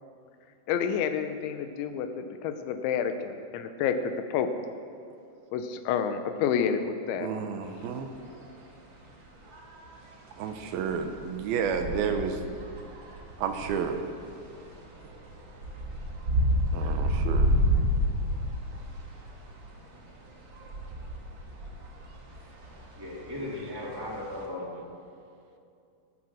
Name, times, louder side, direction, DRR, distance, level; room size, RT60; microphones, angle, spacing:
voice 1, 0.7-4.5 5.5-7.3, left 7 dB, 85° left, 8 dB, 3.2 m, -29 dB
voice 2, 7.2-8.1 10.4-12.4 13.4-14.0 16.7-17.5, right 6 dB, 75° right, 6 dB, 2.3 m, -31 dB
sound 1, 7.7-7.8 8.2-8.5 9.5-10.0 10.5-19.7 19.9-24.4, equal, 45° right, 1.6 m, -30 dB
voice 3, 23.0-24.7, left 1 dB, 5° right, -6 dB, 2.9 m, -36 dB
20.0 x 9.9 x 6.3 m, 2.5 s
omnidirectional pair, 5.2 m